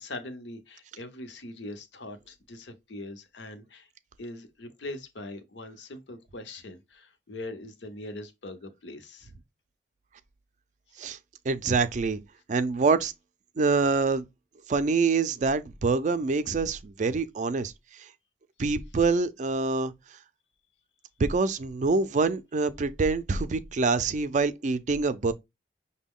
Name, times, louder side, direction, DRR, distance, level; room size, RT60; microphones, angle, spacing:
voice 1, 0.0-3.9 4.2-9.3, left 2 dB, 80° left, 0.8 m, -41 dB
voice 2, 11.5-12.2 12.5-13.1 13.6-14.3 14.7-18.1 18.6-19.9 21.2-25.3, right 4 dB, 45° right, 0.4 m, -25 dB
6.0 x 2.2 x 3.6 m
head